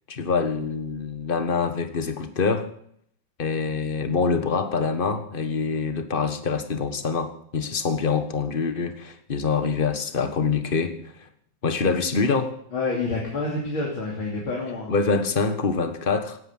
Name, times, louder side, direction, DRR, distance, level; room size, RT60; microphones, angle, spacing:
voice 1, 0.1-2.7 3.4-11.0 11.6-12.5 14.9-16.4, left 5 dB, 30° left, 10 dB, 1.5 m, -25 dB
voice 2, 12.7-14.9, left 3 dB, 85° left, -2 dB, 3.7 m, -28 dB
18.0 x 9.7 x 7.9 m, 0.67 s
omnidirectional pair, 2.2 m